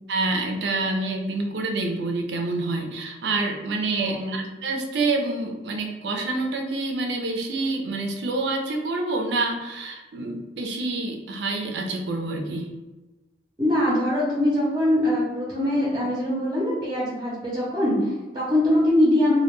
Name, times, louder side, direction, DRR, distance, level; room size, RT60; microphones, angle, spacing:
voice 1, 0.1-12.8, right 3 dB, 75° right, 3 dB, 0.4 m, -27 dB
voice 2, 4.0-4.4 13.6-19.4, left 1 dB, 25° right, -7 dB, 0.6 m, -22 dB
2.2 x 2.1 x 2.9 m, 1.2 s
head